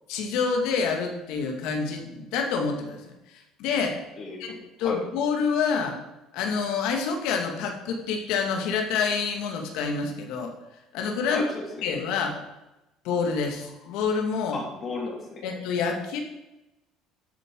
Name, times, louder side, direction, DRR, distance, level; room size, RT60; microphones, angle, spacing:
voice 1, 0.1-4.0 4.4-6.0 6.3-10.5 10.9-11.5 11.8-12.3 13.0-14.6 15.4-16.2, left 5 dB, 75° left, 3 dB, 2.5 m, -27 dB
voice 2, 4.2-4.5 4.8-5.0 11.2-11.9 14.5-15.4, left 3 dB, 35° left, 1 dB, 2.9 m, -34 dB
12.5 x 7.9 x 5.0 m, 0.96 s
cardioid pair, 125°, 0 cm